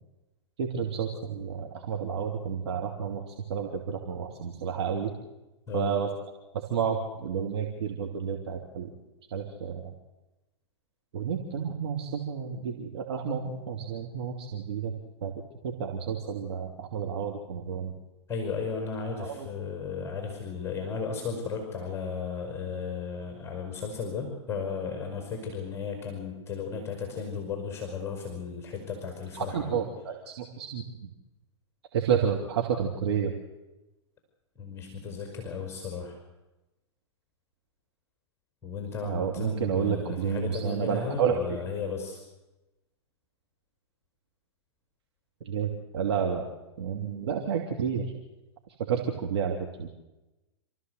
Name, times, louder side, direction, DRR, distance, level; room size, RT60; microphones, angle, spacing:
voice 1, 0.6-5.1 5.7-6.1 6.5-8.9 9.3-9.9 11.1-14.9 15.2-15.3 15.6-17.9 19.2-19.5 29.3-31.1 31.9-33.3 39.0-41.6 45.4-46.5 46.8-48.1 48.9-49.9, right 7 dB, 65° right, 1 dB, 2.8 m, -30 dB
voice 2, 18.3-29.8 34.6-36.2 38.6-42.2, left 5 dB, 15° left, 3 dB, 5.3 m, -35 dB
27.5 x 14.5 x 8.2 m, 1.0 s
figure-of-eight pair, 105°, 15 cm